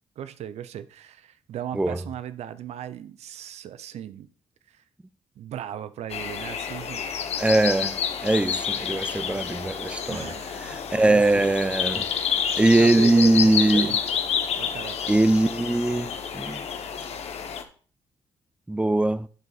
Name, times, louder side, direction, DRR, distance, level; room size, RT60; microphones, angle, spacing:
voice 1, 0.2-4.3 4.7-4.8 5.4-7.5 10.1-11.5 12.8-14.0 14.6-15.1, right 10 dB, 75° right, 0.5 m, -37 dB
sound 1, 6.1-17.6, left 7 dB, 70° left, 1.0 m, -29 dB
voice 2, 7.4-10.2 10.6-12.1 12.6-13.9 15.1-16.6 18.7-19.3, right 2 dB, 10° right, 0.5 m, -21 dB
11.5 x 4.1 x 4.0 m
supercardioid pair, 60°, 11 cm